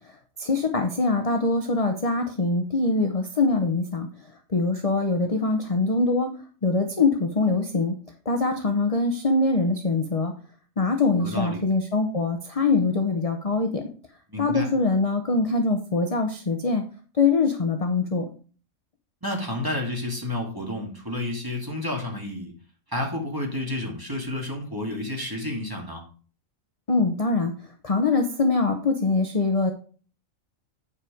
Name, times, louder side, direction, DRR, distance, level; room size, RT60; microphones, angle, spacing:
voice 1, 0.4-4.1 4.5-6.3 6.6-7.9 8.2-10.3 10.8-13.9 14.4-16.8 17.1-18.2 26.9-27.5 27.8-29.7, left 3 dB, 30° left, 4 dB, 0.8 m, -23 dB
voice 2, 11.2-11.6 14.3-14.7 19.2-22.5 22.9-26.0, left 1 dB, 15° right, 0 dB, 2.2 m, -30 dB
9.7 x 4.9 x 4.9 m, 0.40 s
omnidirectional pair, 1.4 m